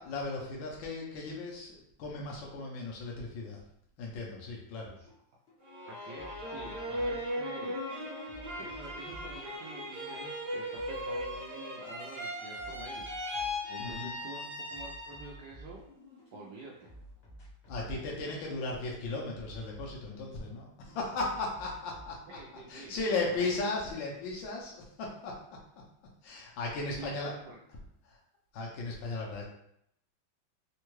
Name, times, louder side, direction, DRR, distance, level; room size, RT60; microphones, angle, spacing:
voice 1, 0.0-3.6 4.0-5.0 13.8-14.2 17.7-22.4 22.7-25.4 26.2-27.3 28.0-28.2 28.5-29.4, left 3 dB, 75° left, -2 dB, 1.3 m, -36 dB
sound 1, 5.1-5.2 5.5-7.7 8.0-12.0 12.3-13.8 14.0-16.3 16.6-20.6 20.9-22.2, right 1 dB, 55° left, 0.7 m, -53 dB
sound 2, 5.6-15.4 15.9-16.5, left 1 dB, 50° right, 1.0 m, -38 dB
voice 2, 5.9-7.8 8.6-13.1 13.7-15.8 16.3-16.9 22.3-23.5 27.0-27.6, right 3 dB, 75° right, -1 dB, 0.9 m, -48 dB
3.6 x 2.2 x 3.0 m, 0.73 s
omnidirectional pair, 2.2 m